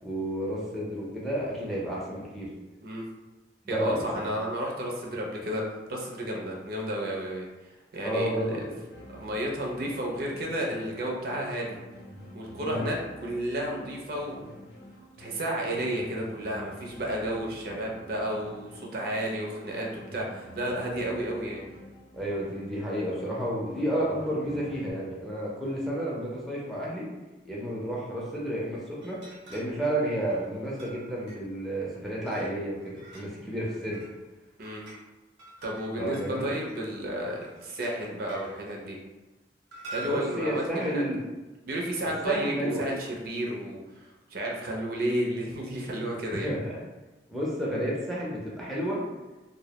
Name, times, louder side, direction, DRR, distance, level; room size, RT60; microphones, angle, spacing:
voice 1, 0.0-2.5 3.6-4.3 8.0-8.7 12.6-12.8 22.1-27.1 27.4-29.2 29.5-34.0 36.0-36.5 40.0-41.2 42.2-42.8 46.4-46.8 47.3-49.0, right 1 dB, ahead, -6 dB, 0.4 m, -31 dB
voice 2, 3.7-5.6 5.9-7.5 7.9-8.7 9.1-11.8 12.3-14.4 15.2-21.6 34.6-34.8 35.6-39.0 39.8-41.0 41.7-43.8 44.3-46.5, right 1 dB, 55° right, -1 dB, 0.4 m, -32 dB
sound 1, 8.9-24.9, equal, 80° left, 0.6 m, -49 dB
sound 2, 29.0-29.8 30.1-31.6 32.3-33.4 33.7-34.2 34.5-35.0 35.4-36.8 37.3-38.5 39.7-40.4, right 3 dB, 85° right, 0.8 m, -45 dB
2.2 x 2.0 x 2.8 m, 1.1 s
head